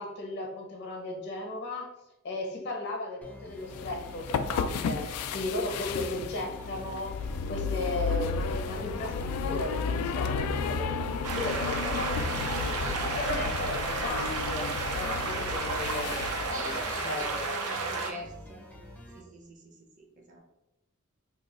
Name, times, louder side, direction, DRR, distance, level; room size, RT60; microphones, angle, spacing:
voice 1, 0.0-1.9 2.2-12.6 13.2-17.4, left 1 dB, 50° left, 2 dB, 0.8 m, -36 dB
sound 1, 3.2-19.2, left 1 dB, 5° left, 0.5 m, -48 dB
sound 2, 3.6-17.5, left 5 dB, 80° left, 0.3 m, -33 dB
sound 3, 11.2-18.1, right 3 dB, 85° right, 0.5 m, -32 dB
voice 2, 12.8-13.5 15.5-15.7 16.5-18.6 19.1-20.4, right 1 dB, 35° right, 1 dB, 0.6 m, -46 dB
2.7 x 2.3 x 3.9 m, 0.91 s
head